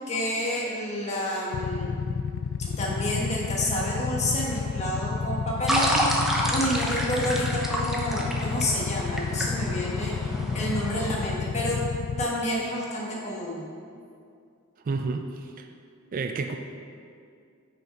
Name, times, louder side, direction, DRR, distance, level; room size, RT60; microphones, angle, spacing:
voice 1, 0.1-1.9 2.6-11.8 12.2-13.6, left 1 dB, 30° left, -4 dB, 1.3 m, -29 dB
Motorcycle / Idling, 1.5-12.3, left 5 dB, 55° left, 0.3 m, -31 dB
sound 1, 5.7-11.1, equal, ahead, 0.7 m, -29 dB
voice 2, 14.9-15.3 15.6-15.7 16.1-16.6, right 4 dB, 40° right, 5 dB, 0.3 m, -29 dB
6.3 x 5.1 x 5.1 m, 2.4 s
head